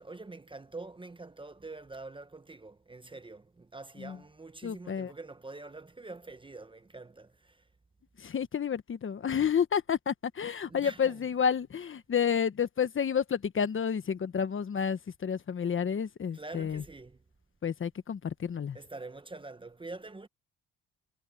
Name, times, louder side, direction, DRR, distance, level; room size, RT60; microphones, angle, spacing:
voice 1, 0.0-7.7 10.6-11.2 16.3-17.2 18.7-20.3, right 3 dB, 15° right, 0.9 m, -45 dB
voice 2, 4.6-5.1 8.2-16.8 17.6-18.8, left 7 dB, 40° left, 1.3 m, -30 dB
cardioid pair, 90°, 30 cm